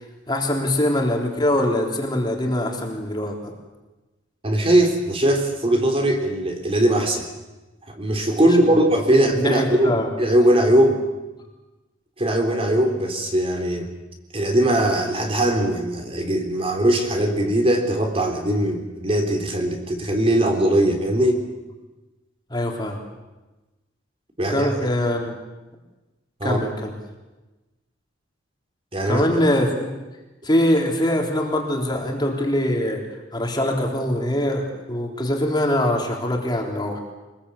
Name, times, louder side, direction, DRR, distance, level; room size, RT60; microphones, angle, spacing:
voice 1, 0.3-3.5 9.1-10.1 22.5-23.0 24.5-25.4 26.4-26.9 29.1-29.9 30.4-33.0 33.3-37.0, left 1 dB, 20° left, 1 dB, 3.8 m, -23 dB
voice 2, 4.4-7.3 7.9-11.0 12.2-13.9 14.3-21.4 24.4-24.8 26.4-26.6 28.9-29.4, right 1 dB, 30° right, 3 dB, 3.4 m, -20 dB
25.0 x 21.0 x 8.5 m, 1.1 s
head